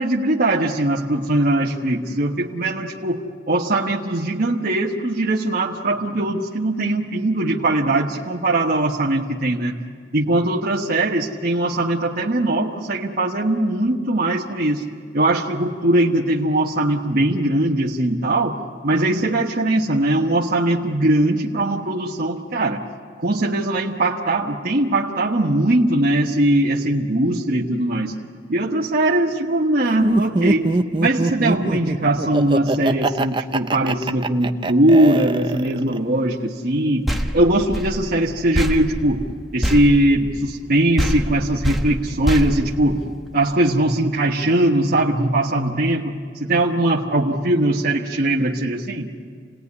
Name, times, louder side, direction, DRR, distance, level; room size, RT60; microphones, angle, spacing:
voice 1, 0.0-9.8 10.1-14.8 15.1-18.6 18.8-22.8 23.2-28.1 28.5-30.7 31.0-37.1 37.3-39.2 39.5-43.0 43.3-49.1, right 1 dB, 55° right, -2 dB, 1.3 m, -20 dB
Laughter, 30.0-36.0, right 2 dB, 25° right, 0.7 m, -22 dB
sound 1, 37.1-40.7 41.0-43.4, equal, ahead, 1.4 m, -25 dB
28.5 x 18.5 x 9.7 m, 2.1 s
head